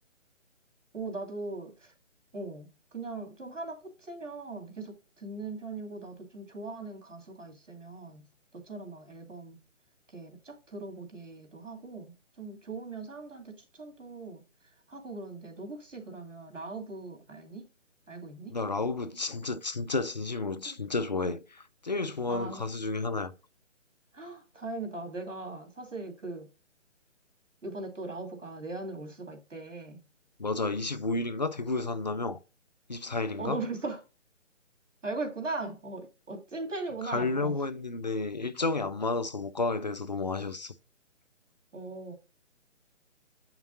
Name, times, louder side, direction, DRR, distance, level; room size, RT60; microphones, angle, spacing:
voice 1, 0.9-1.9 2.3-8.2 8.5-9.6 10.1-14.4 14.9-17.7 18.1-18.6 20.7-20.8 22.3-22.7 24.1-26.5 27.6-30.0 33.4-34.0 35.0-37.6 41.7-42.1, right 3 dB, 75° right, 2.5 m, -39 dB
voice 2, 18.5-23.3 30.4-32.4 32.9-33.6 37.0-40.7, left 3 dB, 35° left, 0.4 m, -31 dB
7.9 x 5.8 x 2.6 m
figure-of-eight pair, 150°, 38 cm